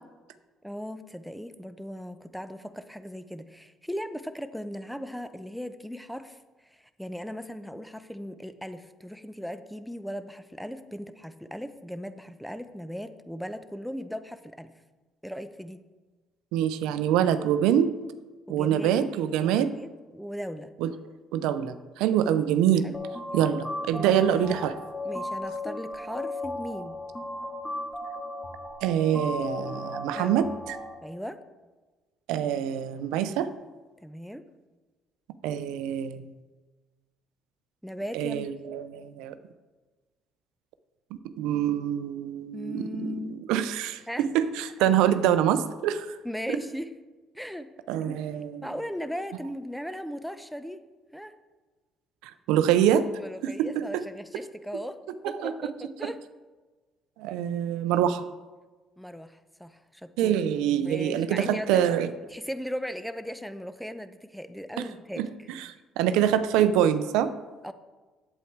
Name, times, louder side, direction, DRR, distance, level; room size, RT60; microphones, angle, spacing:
voice 1, 0.6-14.7 15.2-15.8 18.5-19.0 19.4-20.7 22.8-23.0 23.9-24.2 25.0-27.0 30.2-30.3 31.0-31.4 34.0-34.4 37.8-38.5 42.5-43.4 44.1-44.2 46.2-46.9 47.3-47.7 48.0-48.2 48.6-50.8 51.1-51.3 53.2-55.0 55.2-56.2 59.0-60.4 60.8-61.8 62.3-65.3 67.6-67.7, equal, ahead, 11 dB, 0.7 m, -37 dB
voice 2, 16.5-17.9 18.5-19.7 20.8-20.9 21.3-22.9 23.3-24.8 28.8-30.8 32.3-33.5 35.4-36.3 38.1-39.3 41.4-43.1 43.5-46.2 47.9-48.7 52.2-53.0 53.4-54.0 55.2-55.5 56.0-56.1 57.2-58.3 60.2-62.1 64.8-64.9 65.2-67.3, right 10 dB, 85° right, 12 dB, 0.5 m, -25 dB
sound 1, 22.9-30.9, left 1 dB, 25° left, 2.3 m, -35 dB
8.3 x 8.2 x 4.6 m, 1.3 s
supercardioid pair, 75°, 0 cm